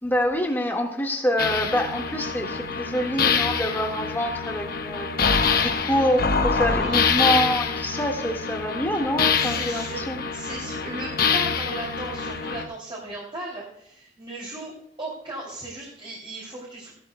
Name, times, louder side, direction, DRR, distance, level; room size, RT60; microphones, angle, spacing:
voice 1, 0.0-5.1 5.6-10.2, equal, 10° left, 1 dB, 1.6 m, -26 dB
sound 1, 1.4-12.7, left 5 dB, 55° left, 1.0 m, -25 dB
voice 2, 6.6-7.2 9.3-10.0 10.3-14.7 15.0-16.9, right 1 dB, 30° right, -5 dB, 2.8 m, -36 dB
16.0 x 12.0 x 2.2 m, 0.77 s
head